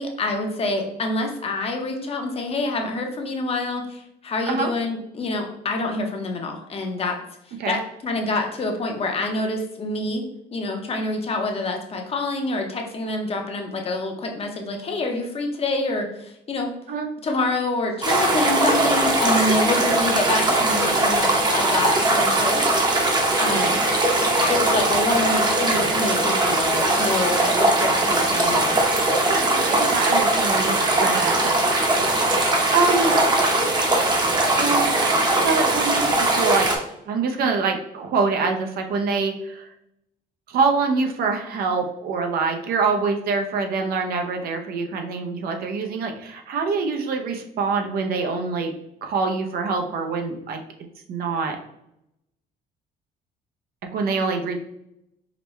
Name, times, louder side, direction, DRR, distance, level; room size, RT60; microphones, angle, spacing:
voice 1, 0.0-7.2 7.6-16.8 17.2-22.7 23.4-23.8 24.5-28.8, left 2 dB, 35° left, 3 dB, 0.7 m, -26 dB
sound 1, 18.0-36.8, right 2 dB, 25° right, 0.8 m, -20 dB
voice 2, 29.3-33.5 34.6-36.7 37.1-39.7 40.5-48.7 49.0-50.6 51.1-51.6 53.9-54.6, right 4 dB, 65° right, 4 dB, 0.7 m, -25 dB
5.0 x 2.2 x 3.1 m, 0.80 s
cardioid pair, 110°, 17 cm